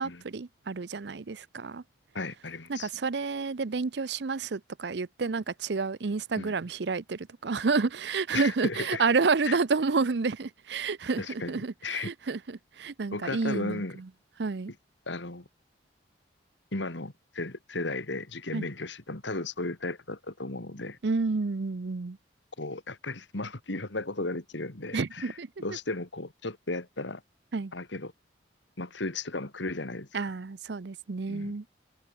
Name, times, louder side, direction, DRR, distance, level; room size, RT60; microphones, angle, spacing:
voice 1, 0.0-1.8 2.7-13.8 14.4-14.7 18.5-18.7 21.0-22.2 24.9-25.5 27.5-27.7 30.1-31.6, right 4 dB, 65° right, 0.6 m, -30 dB
voice 2, 2.1-2.9 6.4-6.5 8.3-9.0 9.4-9.6 11.2-12.1 13.1-14.0 15.1-15.4 16.7-21.0 22.6-27.2 27.7-28.1 28.8-30.3 31.3-31.6, left 2 dB, 75° left, 2.3 m, -35 dB
head